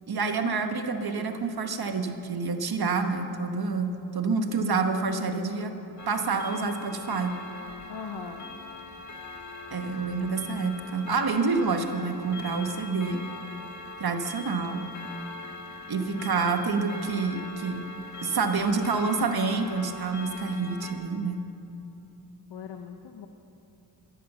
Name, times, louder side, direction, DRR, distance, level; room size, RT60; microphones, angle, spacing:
voice 1, 0.1-5.7 6.1-7.3 9.7-13.2 14.0-14.8 15.9-17.8 18.2-21.4, right 4 dB, 60° right, 6 dB, 1.2 m, -28 dB
Clock, 6.0-20.9, left 3 dB, 45° left, 1.5 m, -41 dB
voice 2, 7.9-8.5 16.1-16.2 22.5-23.3, left 7 dB, 75° left, 5 dB, 0.9 m, -39 dB
13.0 x 11.0 x 6.9 m, 2.9 s
wide cardioid pair, 80°, 41 cm